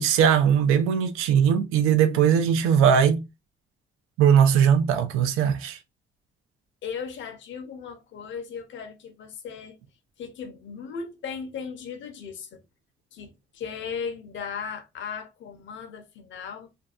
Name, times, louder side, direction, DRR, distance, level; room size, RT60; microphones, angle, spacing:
voice 1, 0.0-3.2 4.2-5.8, right 8 dB, 80° right, 0.5 m, -20 dB
voice 2, 6.8-9.8 10.2-12.6 13.1-16.7, left 6 dB, 65° left, 0.7 m, -37 dB
2.6 x 2.2 x 2.3 m
cardioid pair, 80°, 21 cm